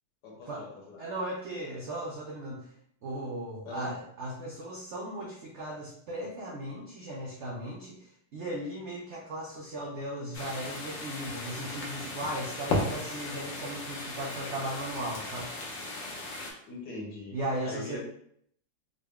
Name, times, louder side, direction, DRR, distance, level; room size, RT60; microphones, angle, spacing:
voice 1, 0.2-1.0 3.6-3.9 16.7-17.4 17.6-18.0, left 3 dB, 70° left, -2 dB, 1.4 m, -41 dB
voice 2, 1.0-2.7 3.0-15.6 17.3-18.0, right 1 dB, 80° right, -3 dB, 0.6 m, -37 dB
sound 1, 10.3-16.5, left 2 dB, 90° left, 1.5 m, -36 dB
3.8 x 2.1 x 3.4 m, 0.67 s
omnidirectional pair, 2.0 m